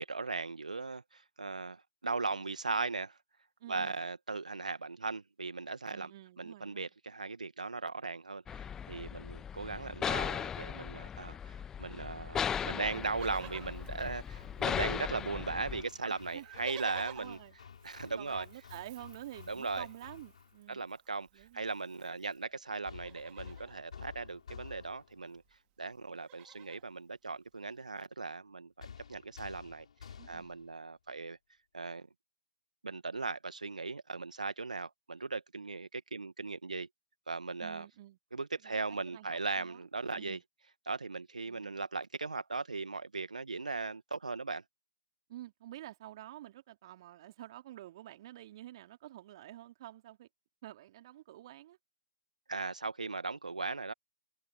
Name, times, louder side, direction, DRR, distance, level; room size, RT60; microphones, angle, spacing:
voice 1, 0.0-3.2 3.7-6.1 6.4-17.4 17.8-18.5 19.5-19.9 20.7-25.4 25.8-29.8 30.3-31.4 31.7-32.1 32.8-36.9 37.3-37.9 38.3-40.4 40.9-44.6 52.5-53.9, right 3 dB, 75° right, 1.5 m, -38 dB
voice 2, 3.6-4.0 5.9-6.9 16.1-16.5 17.1-17.5 18.0-20.9 21.3-21.7 30.2-30.5 37.6-38.2 38.6-39.8 40.2-40.4 41.5-41.9 45.3-50.3 50.6-51.8, right 14 dB, 40° right, 2.8 m, -49 dB
sound 1, 8.5-15.8, left 8 dB, 10° left, 1.1 m, -38 dB
Livestock farm animals working animals, 12.9-14.9 15.2-15.3 15.5-22.4 22.9-23.8 25.0-25.1 25.3-25.6 25.9-26.9 27.5-27.6, right 19 dB, 25° right, 3.0 m, -55 dB
Hammer, 13.2-20.6 22.9-25.3 28.8-30.7, left 7 dB, 55° left, 5.3 m, -52 dB
figure-of-eight pair, 125°, 4 cm